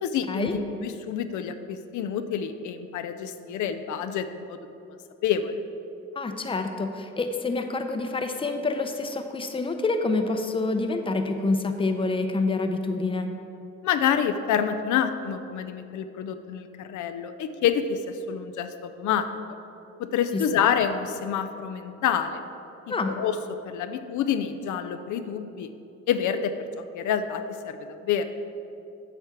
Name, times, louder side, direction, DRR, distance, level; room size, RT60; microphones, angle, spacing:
voice 1, 0.0-4.6 5.2-5.6 13.8-19.3 20.0-22.4 22.9-23.4 23.6-25.7 26.1-26.7 26.9-28.2, left 8 dB, 75° left, 8 dB, 0.6 m, -27 dB
voice 2, 6.2-13.3 22.9-23.1, left 3 dB, 20° left, 6 dB, 0.7 m, -27 dB
8.2 x 4.4 x 7.2 m, 2.7 s
cardioid pair, 90°, 30 cm